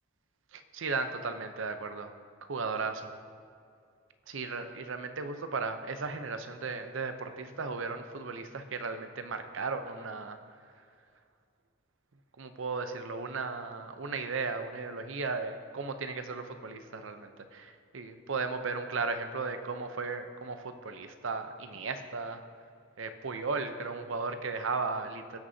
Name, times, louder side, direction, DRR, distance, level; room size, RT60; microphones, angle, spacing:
voice 1, 0.5-2.1 2.5-3.1 4.3-10.4 12.4-22.4 23.0-25.4, right 4 dB, 80° right, 8 dB, 0.7 m, -36 dB
17.5 x 6.3 x 2.8 m, 2.3 s
head